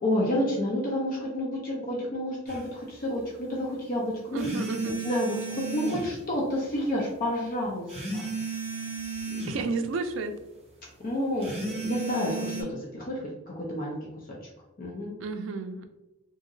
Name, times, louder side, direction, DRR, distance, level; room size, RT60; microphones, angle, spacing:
voice 1, 0.0-4.5 4.8-8.6 9.3-9.4 11.0-14.0 14.3-14.4 14.8-15.2, left 1 dB, 45° left, -3 dB, 0.5 m, -30 dB
sound 1, 2.5-2.6 4.4-6.1 7.9-9.6 11.4-12.6, right 3 dB, 30° right, 0.8 m, -34 dB
voice 2, 4.3-5.0 9.5-10.4 15.2-15.9, right 4 dB, 75° right, 7 dB, 0.4 m, -31 dB
2.8 x 2.6 x 2.6 m, 0.99 s
head